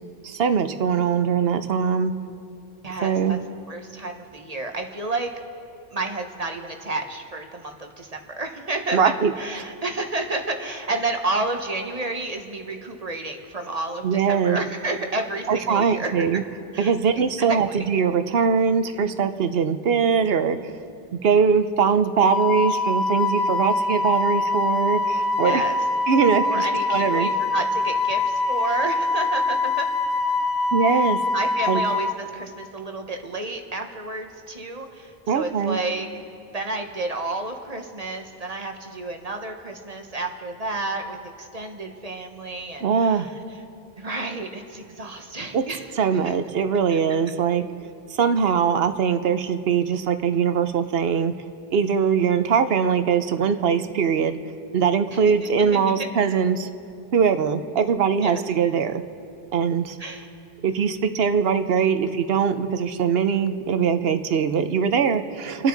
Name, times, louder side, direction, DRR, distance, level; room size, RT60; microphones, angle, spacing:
voice 1, 0.2-2.1 3.0-3.4 8.9-9.3 14.0-14.6 15.5-16.4 16.8-20.6 21.1-25.6 26.1-27.3 30.7-31.2 31.7-31.8 35.3-35.8 42.8-43.3 45.5-45.6 46.0-47.7 48.1-51.3 51.7-54.4 54.7-56.7 57.1-59.0 59.5-60.0 60.6-65.7, right 6 dB, 70° right, 10 dB, 1.0 m, -21 dB
voice 2, 2.8-3.4 3.7-5.3 5.9-9.0 9.4-16.4 16.7-16.9 17.7-17.8 25.4-25.8 26.4-29.9 30.9-31.1 31.3-36.1 36.5-43.3 44.0-46.3 46.9-47.0 55.7-55.8 58.2-58.4 60.0-60.3, right 2 dB, 40° right, 4 dB, 1.1 m, -31 dB
Wind instrument woodwind instrument, 22.2-32.1, left 3 dB, 50° left, 0.8 m, -24 dB
29.5 x 9.9 x 3.9 m, 2.5 s
omnidirectional pair, 1.0 m